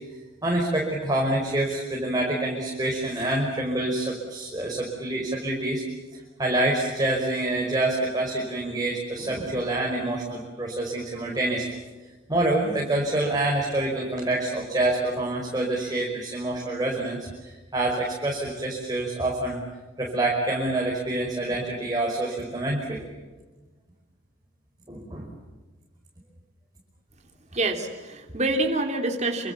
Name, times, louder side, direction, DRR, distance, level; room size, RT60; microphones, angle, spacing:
voice 1, 0.4-5.8 6.4-11.7 12.3-19.6 20.0-23.0 24.9-25.3, right 2 dB, 20° right, -2 dB, 5.3 m, -26 dB
voice 2, 27.5-29.5, right 2 dB, 35° right, 3 dB, 3.3 m, -26 dB
28.0 x 27.0 x 7.2 m, 1.2 s
head